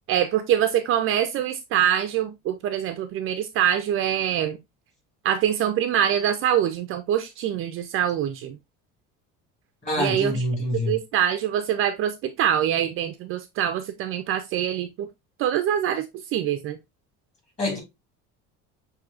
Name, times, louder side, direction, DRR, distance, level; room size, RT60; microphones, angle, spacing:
voice 1, 0.1-4.6 5.2-8.6 10.0-10.4 10.9-15.1 15.4-16.1 16.3-16.8, right 10 dB, 45° right, 0.4 m, -24 dB
voice 2, 9.8-11.0 17.6-17.8, left 1 dB, 20° left, 2.0 m, -26 dB
6.0 x 2.7 x 2.4 m
cardioid pair, 150°, 31 cm